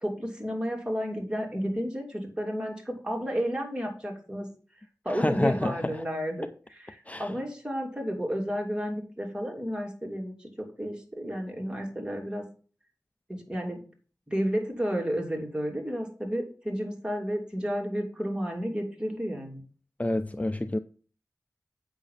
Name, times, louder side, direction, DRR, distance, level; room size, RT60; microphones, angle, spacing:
voice 1, 0.0-4.5 5.0-12.4 13.3-13.8 14.3-19.6, equal, 15° right, 3.0 m, -32 dB
voice 2, 5.1-5.8 7.1-7.3 20.0-20.8, left 1 dB, 20° left, 0.5 m, -28 dB
8.2 x 6.3 x 5.6 m
wide cardioid pair, 50°, 7 cm